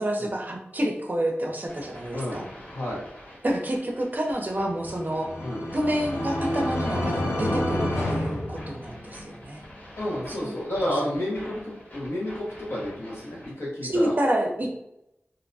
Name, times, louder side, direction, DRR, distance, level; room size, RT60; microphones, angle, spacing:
voice 1, 0.0-2.4 3.4-5.3 5.7-9.6 10.3-10.5 13.8-14.8, right 1 dB, 40° right, 1 dB, 0.5 m, -28 dB
sound 1, 1.7-13.5, left 1 dB, 45° left, 1.2 m, -46 dB
voice 2, 2.1-2.4 2.7-3.0 5.4-5.6 10.0-14.1, left 1 dB, 70° left, -5 dB, 1.0 m, -31 dB
sound 2, 4.7-9.3, left 1 dB, 90° left, 0.5 m, -29 dB
2.6 x 2.1 x 2.6 m, 0.81 s
wide cardioid pair, 65°, 4 cm